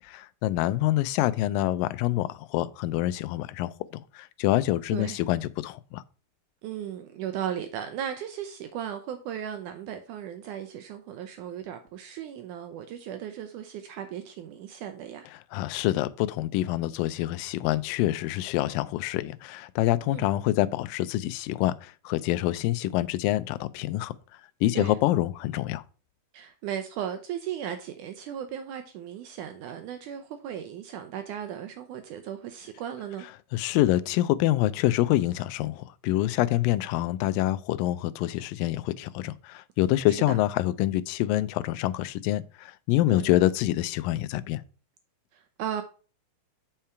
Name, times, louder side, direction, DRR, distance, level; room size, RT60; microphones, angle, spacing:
voice 1, 0.0-6.0 15.5-24.1 24.6-25.8 33.5-44.6, left 15 dB, 85° left, 2.2 m, -26 dB
voice 2, 4.9-5.2 6.6-15.3 20.1-20.3 24.7-24.9 26.3-33.3 40.1-40.4 43.1-43.3 45.3-45.8, right 9 dB, 80° right, 1.9 m, -36 dB
7.3 x 5.6 x 4.4 m
omnidirectional pair, 4.1 m